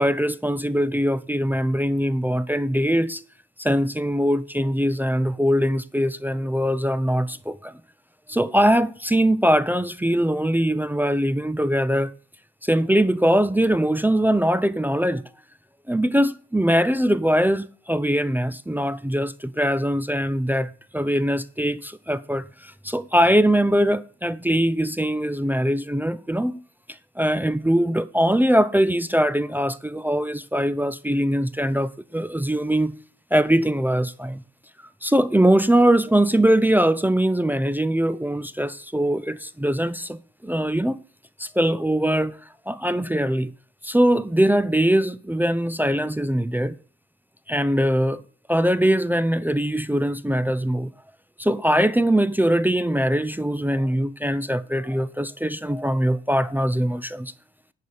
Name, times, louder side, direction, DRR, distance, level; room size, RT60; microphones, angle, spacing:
voice 1, 0.0-3.2 3.6-7.8 8.3-12.1 12.6-15.2 15.9-26.6 27.2-32.9 33.3-34.4 35.0-41.0 41.4-42.4 42.7-43.5 43.8-46.8 47.5-48.2 48.5-50.9 51.4-57.3, equal, 5° right, 0.5 m, -22 dB
10.0 x 4.3 x 7.0 m
supercardioid pair, 65°, 31 cm